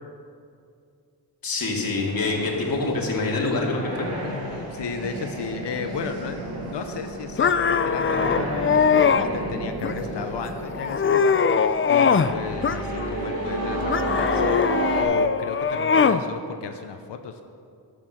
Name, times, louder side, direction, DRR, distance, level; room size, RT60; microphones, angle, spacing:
voice 1, 1.4-4.1, left 3 dB, 55° left, -1 dB, 2.4 m, -25 dB
sound 1, 1.9-15.0, right 1 dB, 60° right, 3.0 m, -32 dB
voice 2, 4.2-14.5 14.9-17.4, left 6 dB, 85° left, 6 dB, 0.9 m, -34 dB
sound 2, 7.4-9.3 9.8-10.3 10.7-12.3 12.6-13.3 13.9-16.2, left 6 dB, 30° left, 0.4 m, -21 dB
13.0 x 8.0 x 6.4 m, 2.4 s
wide cardioid pair, 100°, 41 cm